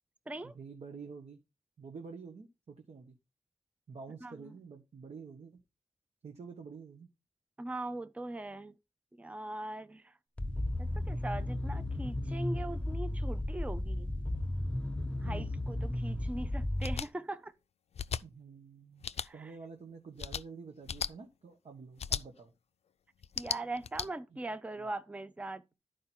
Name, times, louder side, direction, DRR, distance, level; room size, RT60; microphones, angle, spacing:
voice 1, 0.4-1.4 1.8-3.1 3.9-5.6 6.2-7.1 15.2-15.5 18.2-22.5 24.3-24.4 24.8-24.9, right 5 dB, 80° right, 1.1 m, -48 dB
voice 2, 7.6-8.8 9.1-10.2 10.8-14.1 15.2-17.5 19.2-19.5 23.4-25.6, right 2 dB, 10° right, 0.5 m, -41 dB
sound 1, 10.4-16.9, left 1 dB, 10° left, 1.1 m, -34 dB
sound 2, 16.8-17.1 17.9-18.2 19.0-19.3 20.2-20.4 20.9-21.1 22.0-22.2 23.2-24.1, left 7 dB, 75° left, 0.4 m, -35 dB
11.0 x 4.8 x 4.4 m
wide cardioid pair, 75°, 11 cm